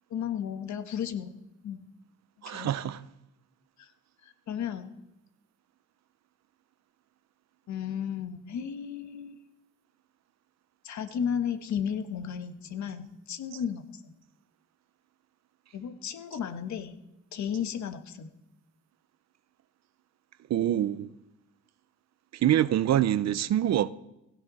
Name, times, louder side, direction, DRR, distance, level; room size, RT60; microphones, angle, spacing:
voice 1, 0.1-1.3 1.6-1.8 2.4-2.7 3.8-3.9 4.2-5.0 7.7-9.4 10.8-14.1 15.7-17.0 17.3-18.3, left 8 dB, 65° left, 1.5 m, -34 dB
voice 2, 2.4-3.0 13.5-13.6 20.5-21.1 22.3-23.9, right 11 dB, 60° right, 0.7 m, -25 dB
18.0 x 16.5 x 4.2 m
cardioid pair, 90°, 30 cm